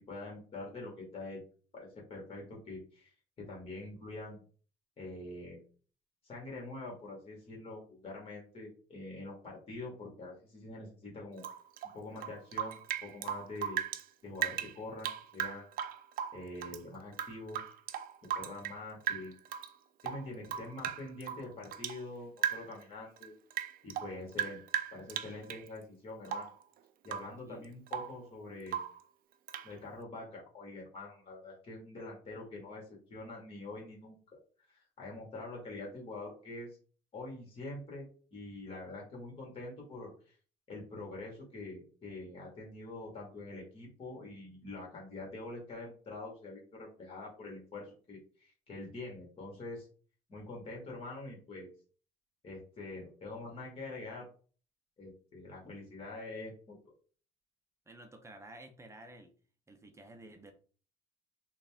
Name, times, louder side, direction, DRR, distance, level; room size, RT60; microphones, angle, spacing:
voice 1, 0.0-1.4 1.7-3.1 3.4-4.4 5.0-5.6 6.2-11.5 11.9-13.8 14.2-15.7 16.3-17.7 18.3-19.3 20.0-23.3 23.8-24.6 24.9-26.5 27.0-28.8 29.6-34.2 34.7-36.8 37.1-40.3 40.7-49.9 50.3-51.7 52.4-54.3 55.0-56.8, left 2 dB, 35° left, -2 dB, 1.8 m, -45 dB
Rain / Drip, 11.4-14.1 14.4-16.8 17.1-18.8 19.1-19.7 20.0-22.0 22.4-22.8 23.2-25.7 26.3-26.6 27.0-27.4 27.6-28.2 28.7-29.0 29.5-29.7, right 10 dB, 60° right, 0.4 m, -37 dB
voice 2, 57.9-59.3 59.7-60.5, right 1 dB, 15° right, 5 dB, 0.7 m, -52 dB
4.0 x 2.5 x 3.5 m, 0.40 s
cardioid pair, 110°, 17 cm